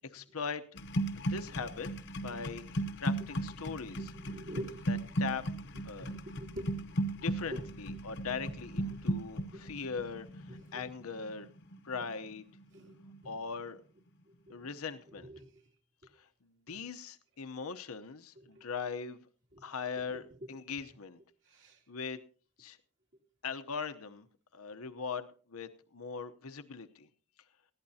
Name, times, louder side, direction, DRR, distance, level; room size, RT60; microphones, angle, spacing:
voice 1, 0.1-0.6 1.1-1.9 2.2-4.1 4.9-5.4 5.8-6.1 7.1-11.5 11.8-12.5 13.2-13.8 14.5-15.3 16.7-19.2 19.6-21.2 21.9-22.2 22.6-22.8 23.4-24.3 24.5-27.1, left 5 dB, 85° left, 10 dB, 0.9 m, -40 dB
sound 1, 0.7-12.6 12.9-13.3, right 1 dB, 55° left, 0.9 m, -36 dB
voice 2, 4.0-4.8 6.1-6.7 7.5-7.6 9.5-9.6 10.7-10.8 12.7-12.9 15.3-15.5 18.4-18.6 20.1-20.5 21.5-21.8, equal, 55° right, 0 dB, 2.7 m, -44 dB
20.5 x 15.5 x 2.8 m, 0.40 s
head